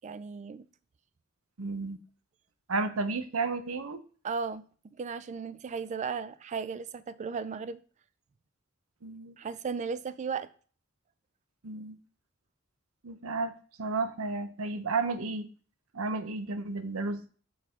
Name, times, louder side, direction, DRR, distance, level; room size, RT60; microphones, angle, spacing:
voice 1, 0.0-0.7 4.2-7.8 9.4-10.5, right 5 dB, 35° right, 0.3 m, -36 dB
voice 2, 1.6-2.0 2.7-4.0 9.0-9.3 11.6-12.0 13.0-13.5 13.8-15.5 15.9-17.2, right 3 dB, 90° right, 0.8 m, -32 dB
6.1 x 4.7 x 3.7 m
head